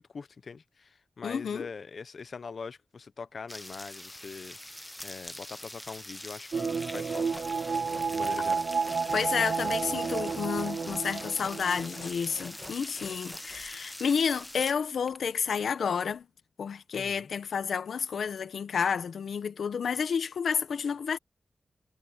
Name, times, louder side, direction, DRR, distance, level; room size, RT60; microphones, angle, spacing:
voice 1, 0.0-7.3 8.1-8.6 16.9-17.3, left 5 dB, 60° left, 0.8 m, -43 dB
voice 2, 1.2-1.7 9.1-16.3 16.6-21.2, left 6 dB, 90° left, 1.2 m, -30 dB
sound 1, 3.5-14.7, left 1 dB, 10° left, 0.8 m, -44 dB
sound 2, 6.5-12.4 12.8-12.9, right 5 dB, 65° right, 0.4 m, -31 dB
sound 3, 7.1-13.7 14.2-14.7 15.0-15.5 16.1-16.2, left 2 dB, 25° left, 2.0 m, -48 dB
wide cardioid pair, 90°, 0 cm